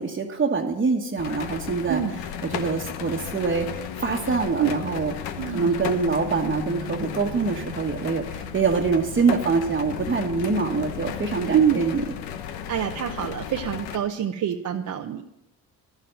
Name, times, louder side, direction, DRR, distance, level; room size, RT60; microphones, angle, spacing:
voice 1, 0.0-2.0 2.5-12.0, right 4 dB, 30° right, -2 dB, 1.4 m, -25 dB
sound 1, 1.2-14.0, left 8 dB, 75° left, 1.0 m, -34 dB
voice 2, 5.4-5.7 11.5-11.8 12.7-15.5, right 9 dB, 50° right, 3 dB, 0.9 m, -25 dB
11.5 x 7.2 x 7.7 m, 0.86 s
supercardioid pair, 70°, 37 cm